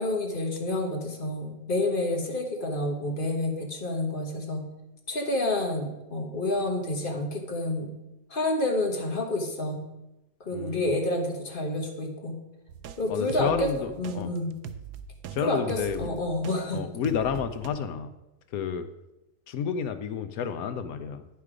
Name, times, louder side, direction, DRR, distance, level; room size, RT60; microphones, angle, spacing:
voice 1, 0.0-4.6 5.1-7.9 8.3-9.8 10.4-12.3 13.0-13.7 14.0-14.5 15.4-16.8, left 1 dB, 35° left, 1 dB, 1.2 m, -29 dB
voice 2, 10.5-10.9 13.1-14.3 15.3-16.1 16.7-18.1 18.5-18.9 19.5-21.2, left 7 dB, 70° left, 10 dB, 1.0 m, -30 dB
sound 1, 12.7-16.6 17.0-17.7, right 8 dB, 90° right, 1.2 m, -41 dB
9.4 x 5.7 x 4.9 m, 0.95 s
omnidirectional pair, 1.6 m